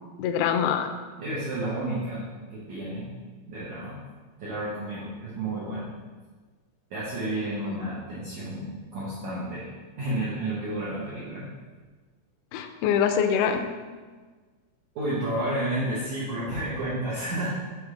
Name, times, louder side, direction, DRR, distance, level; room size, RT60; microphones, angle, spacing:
voice 1, 0.2-0.9 7.7-7.8 12.5-13.6, left 8 dB, 85° left, 6 dB, 2.2 m, -24 dB
voice 2, 1.2-3.1 3.5-4.0 4.4-5.9 6.9-8.7 8.9-9.7 10.0-11.5 14.9-17.6, right 1 dB, 85° right, -8 dB, 1.6 m, -31 dB
7.1 x 3.2 x 4.9 m, 1.4 s
omnidirectional pair, 5.0 m